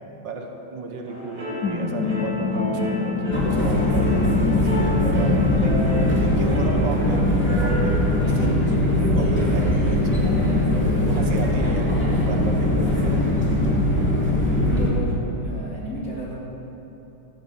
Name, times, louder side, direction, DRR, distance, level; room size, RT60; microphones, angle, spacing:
voice 1, 0.2-8.0 8.3-10.5 11.1-13.2, right 3 dB, 75° right, 3 dB, 1.9 m, -33 dB
sound 1, 1.1-15.4, left 4 dB, 65° left, 1.4 m, -29 dB
sound 2, 1.1-8.1, equal, 45° right, 3.1 m, -32 dB
sound 3, 3.3-14.9, left 1 dB, 5° left, 2.6 m, -21 dB
voice 2, 14.4-15.1 15.4-16.3, equal, 50° left, -6 dB, 3.8 m, -32 dB
14.5 x 9.4 x 7.3 m, 3.0 s
omnidirectional pair, 2.0 m